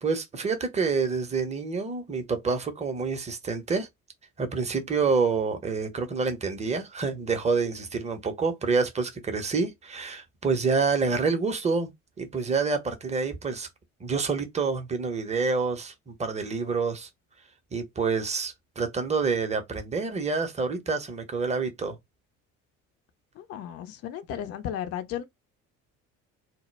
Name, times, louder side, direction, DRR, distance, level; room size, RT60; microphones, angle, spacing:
voice 1, 0.0-3.9 4.4-11.9 12.2-13.7 14.0-17.1 17.7-22.0, right 4 dB, 15° right, 0.7 m, -27 dB
voice 2, 23.3-25.2, left 10 dB, 35° left, 0.5 m, -34 dB
2.1 x 2.1 x 3.1 m
figure-of-eight pair, 60°, 41 cm